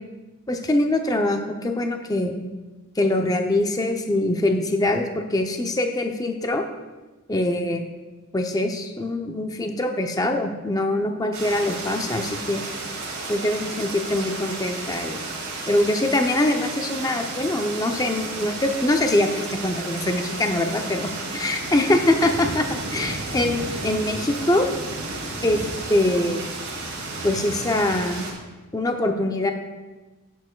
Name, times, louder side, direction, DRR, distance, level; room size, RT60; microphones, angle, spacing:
voice 1, 0.5-2.3 3.0-6.6 7.3-7.8 8.3-12.6 13.3-15.3 15.7-21.1 21.4-24.7 25.4-26.4 27.2-28.3 28.7-29.5, left 1 dB, 15° left, 4 dB, 0.5 m, -23 dB
sound 1, 11.3-28.3, right 2 dB, 80° right, 2.1 m, -32 dB
10.0 x 8.6 x 2.2 m, 1.2 s
head